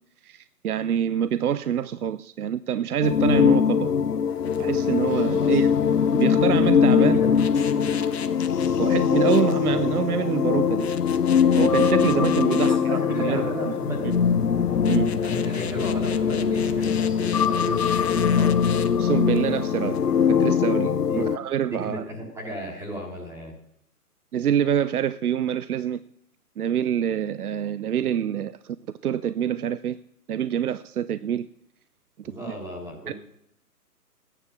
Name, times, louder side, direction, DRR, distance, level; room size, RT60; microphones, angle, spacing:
voice 1, 0.2-3.9 4.6-5.9 6.1-7.2 8.8-10.9 11.6-13.7 14.9-15.1 18.9-20.0 20.3-22.0 24.3-26.0 26.6-28.8 29.0-30.0 30.3-31.5 33.1-33.2, right 9 dB, 70° right, 0.6 m, -26 dB
sound 1, 3.0-21.4, left 7 dB, 85° left, 1.0 m, -22 dB
sound 2, 4.3-20.5, left 7 dB, 45° left, 1.0 m, -40 dB
voice 2, 7.0-8.0 12.6-14.3 15.2-18.5 21.1-21.3 21.7-23.5 32.2-33.1, equal, 5° right, 1.6 m, -35 dB
13.5 x 10.0 x 6.1 m
figure-of-eight pair, 145°, 46 cm